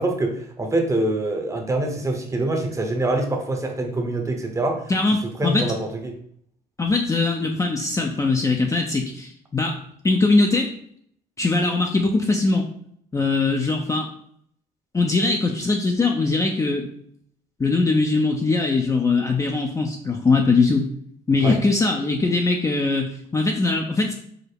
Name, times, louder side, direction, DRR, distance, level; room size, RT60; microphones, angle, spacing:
voice 1, 0.0-4.8 5.4-6.1 21.4-21.6, right 2 dB, 20° right, 3 dB, 0.8 m, -25 dB
voice 2, 4.9-5.7 6.8-9.7 10.0-10.7 11.4-12.6 13.1-14.1 14.9-16.9 17.6-20.9 21.3-24.1, left 3 dB, 20° left, 2 dB, 0.5 m, -21 dB
4.9 x 2.0 x 4.6 m, 0.65 s
cardioid pair, 110°, 17 cm